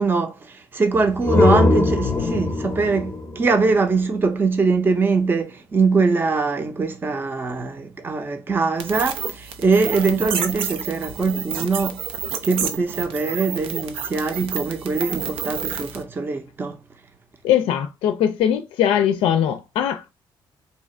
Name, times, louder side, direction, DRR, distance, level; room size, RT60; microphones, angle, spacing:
voice 1, 0.0-12.0 12.4-16.8, right 4 dB, 25° right, 0.6 m, -22 dB
sound 1, 0.9-4.6, left 2 dB, 30° left, 0.7 m, -21 dB
sound 2, 8.8-16.0, right 7 dB, 85° right, 0.6 m, -30 dB
voice 2, 17.4-20.1, left 10 dB, 85° left, 0.4 m, -21 dB
2.8 x 2.4 x 4.2 m
cardioid pair, 120°, 9 cm